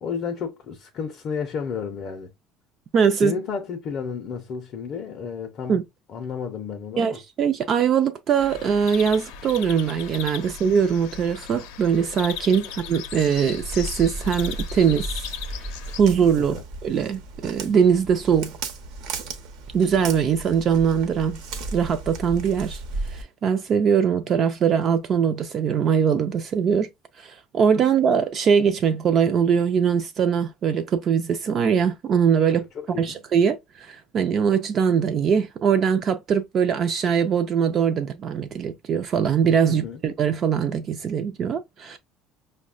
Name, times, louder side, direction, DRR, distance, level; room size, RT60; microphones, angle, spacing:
voice 1, 0.0-2.3 3.1-7.2 16.4-16.7 32.4-33.2 39.6-40.0, left 6 dB, 35° left, 0.5 m, -32 dB
voice 2, 2.9-3.3 5.7-5.8 7.0-15.2 16.0-16.6 16.8-18.5 19.7-21.4 21.7-22.8 23.1-26.9 27.2-32.6 33.0-42.0, right 7 dB, 30° right, 0.3 m, -22 dB
sound 1, 8.4-16.0, left 8 dB, 85° left, 0.5 m, -37 dB
Walk footsteps, 13.6-23.2, right 3 dB, 65° right, 0.7 m, -35 dB
5.4 x 2.1 x 2.4 m
cardioid pair, 170°, 0 cm